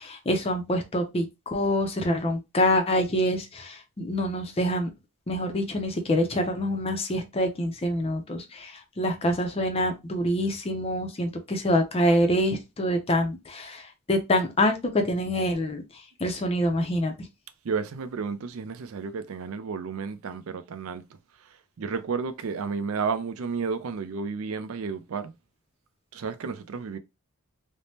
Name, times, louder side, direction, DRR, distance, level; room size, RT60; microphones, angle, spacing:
voice 1, 0.0-4.9 5.3-15.8 16.2-17.1, equal, 25° left, 0.5 m, -26 dB
voice 2, 17.6-25.3 26.1-27.0, right 5 dB, 70° right, 0.4 m, -32 dB
3.3 x 2.1 x 2.7 m
head